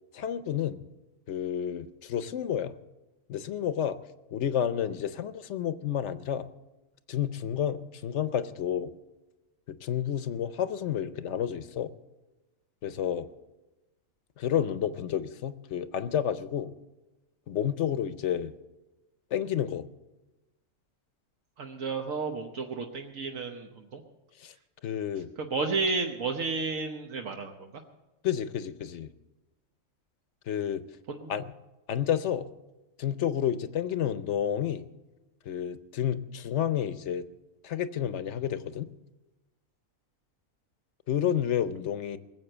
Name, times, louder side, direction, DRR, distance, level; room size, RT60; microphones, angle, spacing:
voice 1, 0.1-0.8 1.3-2.7 3.3-4.0 4.3-6.5 7.1-8.9 9.7-11.9 12.8-13.3 14.4-16.7 17.5-18.5 19.3-19.9 24.4-24.5 24.8-25.3 28.2-29.1 30.5-30.8 31.3-31.5 31.9-32.5 33.0-34.9 35.5-37.3 37.6-38.9 41.1-42.2, left 9 dB, 65° left, 13 dB, 0.9 m, -30 dB
voice 2, 21.6-24.0 25.4-27.7 31.1-31.3, right 4 dB, 75° right, 3 dB, 1.4 m, -32 dB
20.0 x 7.9 x 7.8 m, 1.1 s
omnidirectional pair, 1.4 m